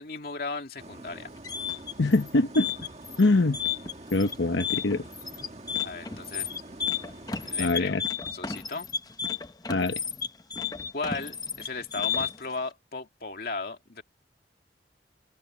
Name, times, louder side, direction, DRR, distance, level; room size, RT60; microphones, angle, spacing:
voice 1, 0.0-1.3 5.8-6.5 7.4-8.0 8.3-8.9 10.9-14.0, left 3 dB, 55° left, 2.5 m, -35 dB
sound 1, 0.8-7.6, right 2 dB, 35° right, 1.7 m, -46 dB
sound 2, 1.2-12.5, left 7 dB, 20° left, 0.8 m, -33 dB
voice 2, 2.0-2.7 3.2-3.6 4.1-5.1 7.6-8.0 9.7-10.0, left 2 dB, 90° left, 0.9 m, -23 dB
head